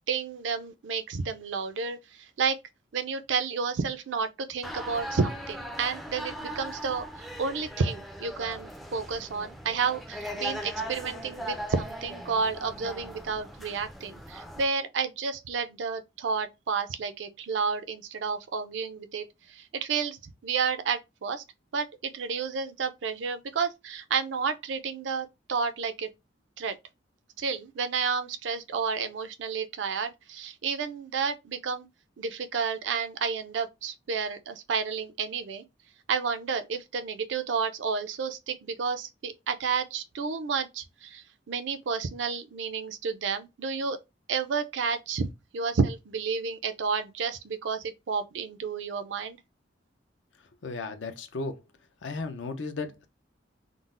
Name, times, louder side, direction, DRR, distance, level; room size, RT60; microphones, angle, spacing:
voice 1, 0.1-2.6 2.9-21.4 21.7-26.1 26.6-26.8 27.4-31.9 32.2-35.6 36.1-44.0 44.3-45.3 45.5-49.4, right 5 dB, 75° right, 0.4 m, -31 dB
sound 1, 4.6-14.6, equal, ahead, 0.3 m, -39 dB
voice 2, 50.6-51.6 52.0-53.1, left 3 dB, 75° left, 0.5 m, -35 dB
3.8 x 2.0 x 2.4 m
head